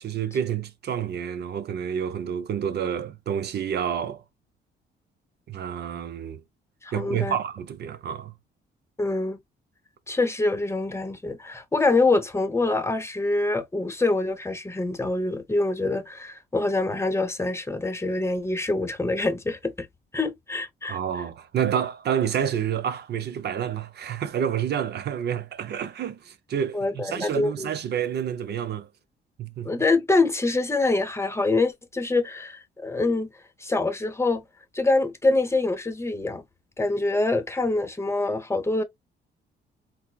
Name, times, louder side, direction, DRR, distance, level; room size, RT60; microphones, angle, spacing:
voice 1, 0.0-4.2 5.5-6.4 6.9-8.3 20.9-28.9 29.4-29.8, right 8 dB, 55° right, 0.5 m, -29 dB
voice 2, 6.8-7.4 9.0-9.4 10.1-19.9 20.1-21.0 26.7-27.7 29.6-33.3 33.6-34.4 34.7-36.4 36.8-38.8, left 2 dB, 15° left, 0.8 m, -25 dB
4.3 x 2.1 x 2.3 m
cardioid pair, 90°, 20 cm